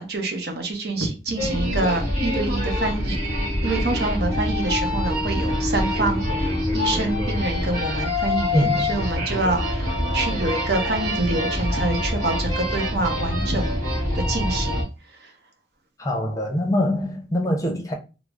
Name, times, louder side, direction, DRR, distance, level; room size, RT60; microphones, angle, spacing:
voice 1, 0.0-3.2 3.6-14.9 15.2-15.3, right 2 dB, 60° right, 0.8 m, -27 dB
sound 1, 1.4-14.8, left 1 dB, 45° right, 1.8 m, -25 dB
voice 2, 8.5-9.0 16.0-17.9, equal, 20° left, 0.6 m, -23 dB
3.7 x 2.0 x 3.4 m
head